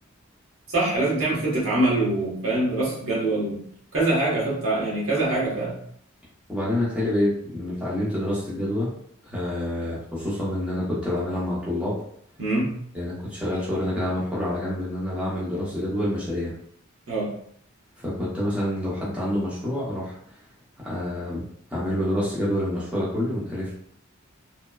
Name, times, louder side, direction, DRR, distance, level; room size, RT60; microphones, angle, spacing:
voice 1, 0.7-3.6 3.9-5.8 12.4-12.7 17.1-17.3, right 2 dB, 75° right, -5 dB, 1.1 m, -24 dB
voice 2, 6.5-8.9 9.2-11.9 12.9-16.5 18.0-20.2 20.8-23.7, left 1 dB, 5° right, -8 dB, 0.7 m, -27 dB
3.0 x 2.1 x 2.2 m, 0.66 s
head